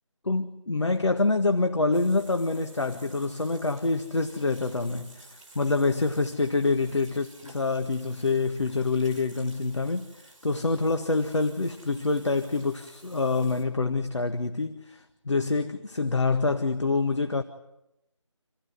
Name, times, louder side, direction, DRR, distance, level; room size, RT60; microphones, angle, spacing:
voice 1, 0.2-10.1 10.4-17.4, left 3 dB, 65° left, 1.7 m, -26 dB
Water tap faucet / Sink (filling or washing), 1.9-13.6, right 2 dB, 10° right, 3.2 m, -53 dB
28.0 x 16.0 x 9.6 m
figure-of-eight pair, 175°, 16 cm